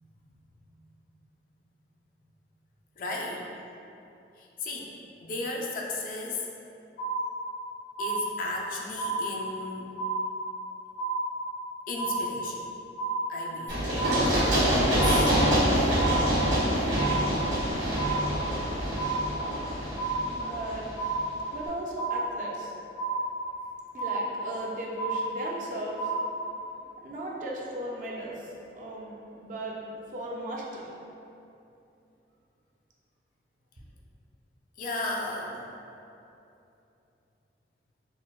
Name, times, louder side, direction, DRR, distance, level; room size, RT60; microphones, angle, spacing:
voice 1, 3.0-3.5 4.4-4.9 5.2-6.4 8.0-10.0 11.9-12.6 13.3-13.8 14.2-15.3 34.8-35.7, left 2 dB, 50° left, -1 dB, 0.3 m, -35 dB
sound 1, 7.0-7.6 8.0-8.6 9.0-9.6 10.0-10.6 11.0-11.6 12.0-12.6 13.0-13.6 14.0-14.6 15.0-15.6 16.0-16.6 17.0-17.6 18.0-18.6 19.0-19.6 20.0-20.6 21.0-21.6 22.0-22.6 23.0-23.6 24.0-24.6 25.0-25.6 26.0-26.6, right 2 dB, 70° left, 1.0 m, -31 dB
Run, 13.7-21.3, equal, 80° right, 1.2 m, -26 dB
voice 2, 19.4-19.8 20.2-20.9 21.5-22.7 23.9-26.1 27.0-29.8 30.1-30.9, right 1 dB, 45° right, -3 dB, 0.4 m, -37 dB
4.2 x 2.0 x 2.2 m, 2.8 s
head